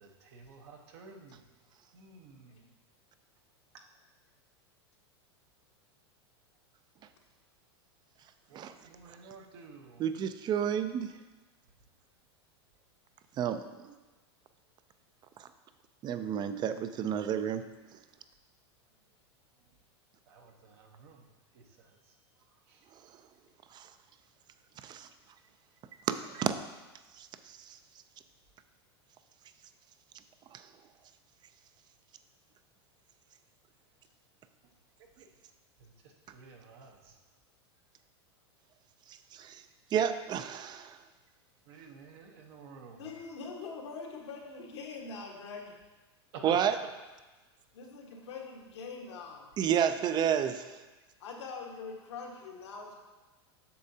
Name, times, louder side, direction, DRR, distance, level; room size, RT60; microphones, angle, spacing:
voice 1, 0.0-1.4 1.9-2.7 3.7-3.9 8.5-10.1 20.3-21.3 21.5-22.0 22.7-22.8 35.2-35.3 35.8-37.2 41.7-43.1 46.3-46.6, right 5 dB, 65° right, 2 dB, 1.0 m, -51 dB
voice 2, 10.0-11.1 13.4-13.9 16.0-17.6 23.7-23.9 24.8-25.1 26.1-26.5 27.2-27.8 30.5-30.6 39.3-39.6 39.9-41.0 46.4-46.8 49.6-50.8, right 8 dB, 30° right, 10 dB, 0.5 m, -31 dB
voice 3, 42.9-45.8 47.7-49.5 51.2-53.0, left 4 dB, 80° left, 0 dB, 1.5 m, -43 dB
8.4 x 6.4 x 2.8 m, 1.2 s
hypercardioid pair, 110°, 14 cm